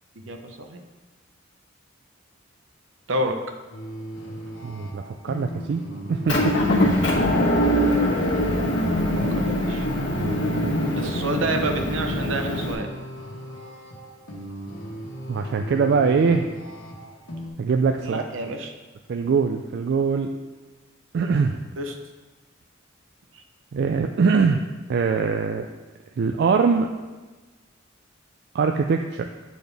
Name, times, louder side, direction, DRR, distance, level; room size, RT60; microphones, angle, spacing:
voice 1, 0.2-0.8 3.1-3.4 9.3-9.9 10.9-12.9 18.0-18.7 21.8-21.9 23.3-23.4, right 1 dB, 75° right, 4 dB, 0.7 m, -29 dB
sound 1, 3.7-17.5, equal, 85° left, 1.3 m, -37 dB
voice 2, 4.6-5.8 6.1-6.6 10.1-10.9 15.3-16.5 17.6-18.2 19.1-20.3 21.1-21.6 23.7-24.6 24.9-25.7 26.2-26.9 28.5-29.3, right 5 dB, 55° right, 5 dB, 0.3 m, -22 dB
Motor vehicle (road) / Engine, 6.3-12.7, left 1 dB, 65° left, 1.3 m, -23 dB
8.7 x 4.2 x 3.4 m, 1.3 s
head